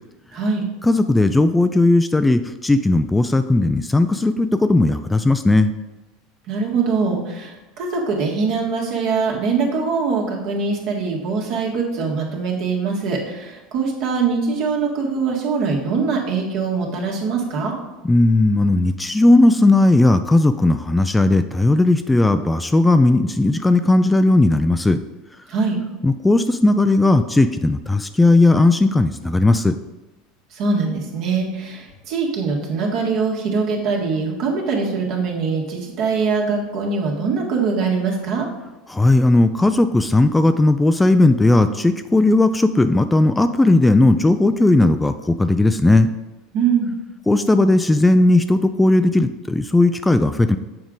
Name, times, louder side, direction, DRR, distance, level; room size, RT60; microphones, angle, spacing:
voice 1, 0.3-0.6 6.5-17.7 25.5-25.8 30.5-38.5 46.5-46.9, right 4 dB, 60° right, -1 dB, 1.7 m, -22 dB
voice 2, 0.8-5.7 18.0-25.0 26.0-29.8 38.9-46.1 47.3-50.6, left 2 dB, 10° left, 10 dB, 0.4 m, -16 dB
7.1 x 4.9 x 3.9 m, 1.1 s
hypercardioid pair, 80°, 0 cm